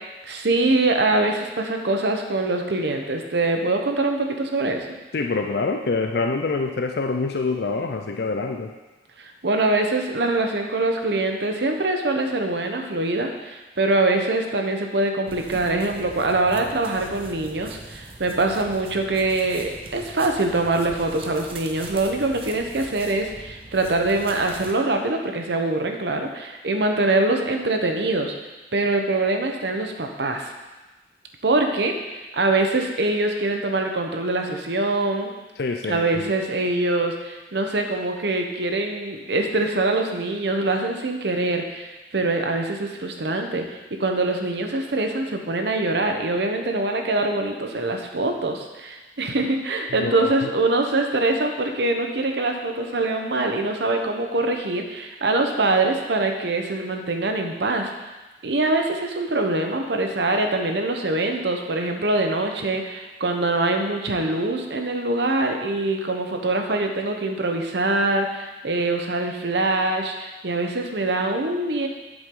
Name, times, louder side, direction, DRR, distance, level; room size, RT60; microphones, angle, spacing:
voice 1, 0.3-4.9 9.2-28.3 28.7-30.5 31.4-31.9 32.3-35.3 35.9-43.6 44.0-57.9 58.4-71.9, right 2 dB, 70° right, 4 dB, 0.9 m, -24 dB
voice 2, 5.1-8.7 35.6-36.3 49.9-50.5, left 3 dB, 60° left, 4 dB, 0.5 m, -26 dB
sound 1, 15.3-24.7, right 2 dB, 30° right, 0.7 m, -41 dB
8.2 x 7.3 x 3.8 m, 1.1 s
head